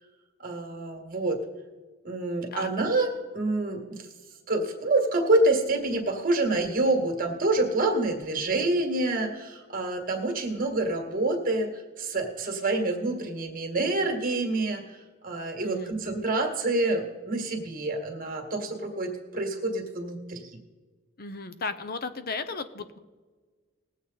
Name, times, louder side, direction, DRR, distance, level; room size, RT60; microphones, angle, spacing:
voice 1, 0.4-1.4 2.0-4.1 4.5-11.7 12.0-15.0 15.2-20.5, right 2 dB, 45° right, 3 dB, 2.0 m, -27 dB
voice 2, 15.6-15.9 21.2-23.0, left 4 dB, 50° left, 11 dB, 0.8 m, -35 dB
20.0 x 8.1 x 4.1 m, 1.3 s
head